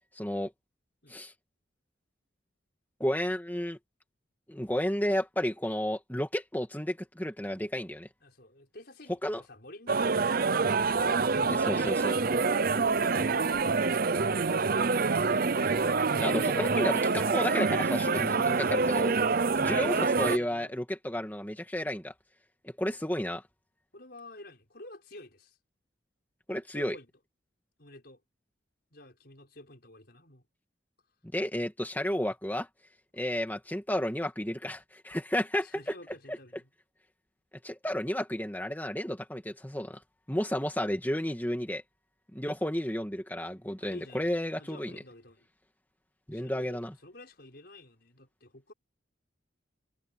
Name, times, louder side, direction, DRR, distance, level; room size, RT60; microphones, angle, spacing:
voice 1, 0.1-0.5 1.1-1.3 3.0-3.8 4.5-8.1 9.2-9.4 11.5-12.1 16.2-19.1 19.6-22.1 22.6-23.4 26.5-27.0 31.3-32.7 33.1-35.8 37.6-40.0 40.3-41.8 42.3-44.9 46.3-46.9, equal, 10° left, 2.3 m, -32 dB
voice 2, 8.2-11.2 11.5-15.6 19.0-20.8 23.9-25.6 26.5-27.1 27.8-28.2 28.9-30.5 35.6-36.7 43.8-45.5 46.3-48.7, left 2 dB, 55° left, 5.8 m, -50 dB
sound 1, 9.9-20.4, right 4 dB, 50° right, 0.7 m, -26 dB
head